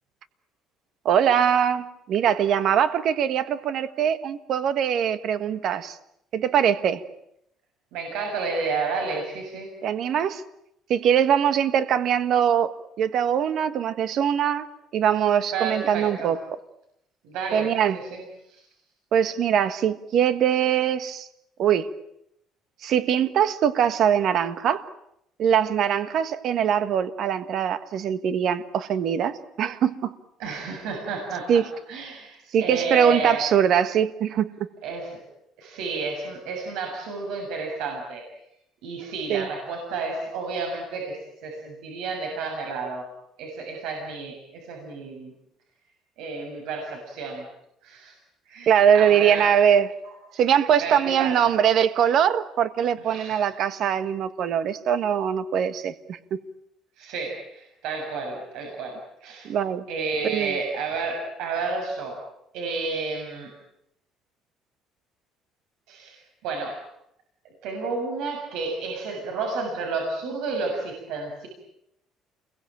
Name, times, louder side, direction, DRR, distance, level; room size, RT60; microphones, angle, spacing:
voice 1, 1.0-6.0 6.3-7.0 9.8-10.4 10.9-14.7 14.9-16.4 17.5-18.0 19.1-21.3 21.6-21.9 22.8-24.8 25.4-30.1 31.5-31.7 32.5-34.5 39.3-39.5 48.7-49.9 50.3-56.4 59.4-59.9 60.2-60.5, right 9 dB, 55° right, 12 dB, 1.5 m, -22 dB
voice 2, 7.9-9.7 15.5-16.3 17.2-18.2 18.5-18.7 30.4-33.5 34.8-35.2 35.6-38.2 38.8-43.1 43.4-45.3 46.2-47.4 47.8-48.1 48.5-49.6 50.0-50.1 50.8-51.4 52.0-52.1 53.0-53.4 57.0-59.5 59.9-62.2 62.5-63.5 65.9-66.8 67.4-71.5, right 4 dB, 85° right, 2 dB, 6.9 m, -31 dB
28.5 x 22.5 x 9.0 m, 0.79 s
cardioid pair, 150°, 0 cm